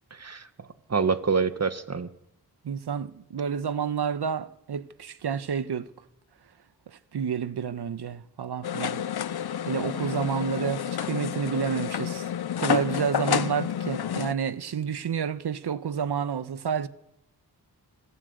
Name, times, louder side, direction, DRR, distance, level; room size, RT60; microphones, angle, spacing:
voice 1, 0.1-2.1, right 5 dB, 40° right, 1.6 m, -27 dB
voice 2, 2.6-5.9 6.9-9.0 9.7-12.3 12.6-16.9, right 7 dB, 75° right, 1.4 m, -29 dB
sound 1, 8.6-14.3, left 9 dB, 70° left, 0.8 m, -29 dB
25.5 x 16.0 x 8.2 m
wide cardioid pair, 80°, 40 cm